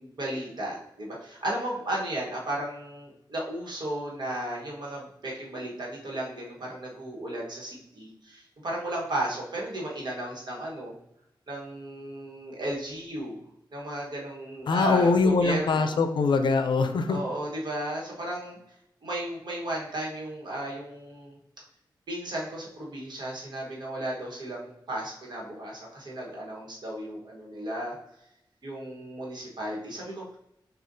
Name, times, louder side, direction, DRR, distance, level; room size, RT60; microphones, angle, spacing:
voice 1, 0.0-10.9 11.5-13.4 13.7-16.0 17.1-21.4 22.1-28.0 28.6-30.4, right 1 dB, 60° right, -3 dB, 1.3 m, -34 dB
voice 2, 14.7-17.2, left 4 dB, 70° left, 7 dB, 0.4 m, -23 dB
6.3 x 2.4 x 2.7 m, 0.82 s
wide cardioid pair, 145°, 8 cm